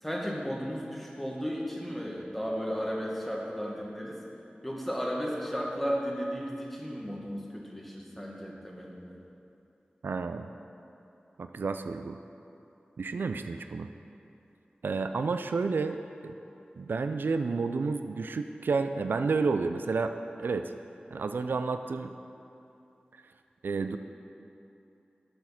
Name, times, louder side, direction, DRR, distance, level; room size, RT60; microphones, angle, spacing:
voice 1, 0.0-4.2 4.6-9.2, equal, 5° left, -2 dB, 1.7 m, -34 dB
voice 2, 10.0-10.5 11.4-12.2 13.0-13.9 14.8-16.3 16.8-20.1 20.4-20.7 21.1-22.1 23.6-24.0, right 4 dB, 85° right, 8 dB, 0.3 m, -30 dB
7.6 x 7.1 x 5.8 m, 2.8 s
cardioid pair, 40°, 3 cm